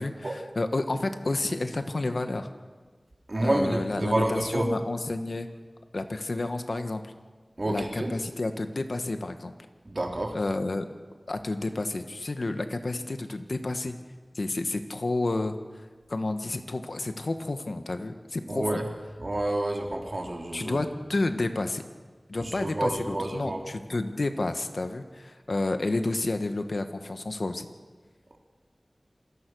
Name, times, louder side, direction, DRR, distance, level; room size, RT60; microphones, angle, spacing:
voice 1, 0.0-2.5 3.4-5.5 5.9-7.1 7.7-9.5 10.3-10.8 11.3-13.9 14.3-15.6 16.1-18.8 20.5-21.8 22.3-27.6, left 2 dB, 75° left, 8 dB, 1.6 m, -30 dB
voice 2, 3.3-4.7 7.6-8.1 9.9-10.3 18.5-18.8 19.2-20.8 22.4-23.6, right 1 dB, 55° right, 1 dB, 3.7 m, -29 dB
27.0 x 17.0 x 6.5 m, 1.4 s
wide cardioid pair, 50°, 0 cm